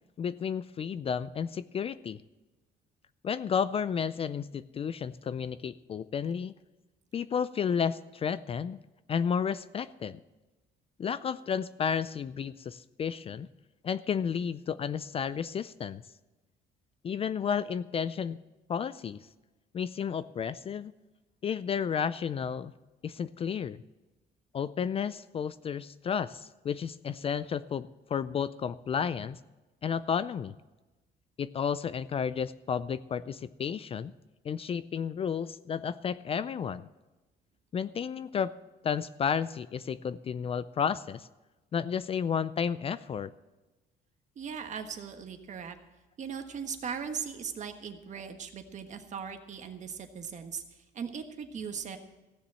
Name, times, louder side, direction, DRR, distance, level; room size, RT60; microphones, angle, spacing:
voice 1, 0.2-2.2 3.2-6.5 7.1-8.8 9.1-10.2 11.0-13.5 13.8-16.0 17.0-18.4 18.7-19.2 19.7-20.9 21.4-22.7 23.0-23.8 24.5-29.4 29.8-30.5 31.4-34.1 34.4-36.9 37.7-38.5 38.8-41.3 41.7-43.3, left 7 dB, 35° left, 16 dB, 0.4 m, -32 dB
voice 2, 44.3-45.8 46.2-50.6 50.9-52.0, right 6 dB, 45° right, 6 dB, 1.4 m, -39 dB
15.5 x 7.1 x 7.6 m, 1.1 s
cardioid pair, 110°, 17 cm